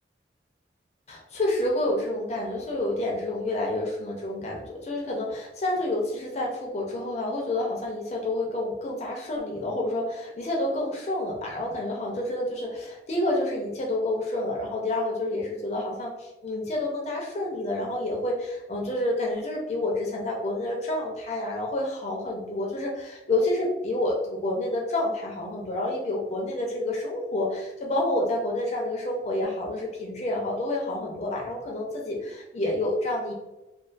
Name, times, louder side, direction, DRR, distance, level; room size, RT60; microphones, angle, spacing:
voice 1, 1.1-33.3, left 1 dB, 35° left, -1 dB, 0.4 m, -29 dB
2.3 x 2.2 x 2.4 m, 0.99 s
head